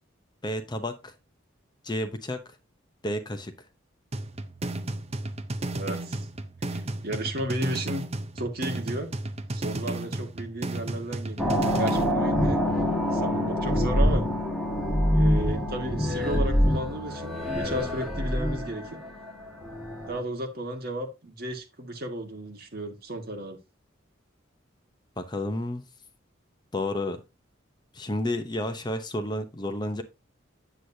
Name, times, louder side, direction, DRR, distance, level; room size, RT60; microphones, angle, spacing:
voice 1, 0.4-1.1 1.8-2.4 3.0-3.5 25.2-25.8 26.7-27.2 27.9-30.0, left 1 dB, 20° left, 8 dB, 0.8 m, -31 dB
sound 1, 4.1-12.1, right 2 dB, 30° right, 0.6 m, -33 dB
voice 2, 5.7-6.3 6.7-8.1 8.3-9.1 9.5-12.7 13.0-14.2 15.1-19.0 20.1-23.6, right 1 dB, 50° right, 4 dB, 1.6 m, -34 dB
sound 2, 11.4-20.2, equal, ahead, 1.7 m, -25 dB
8.3 x 7.9 x 2.7 m, 0.25 s
head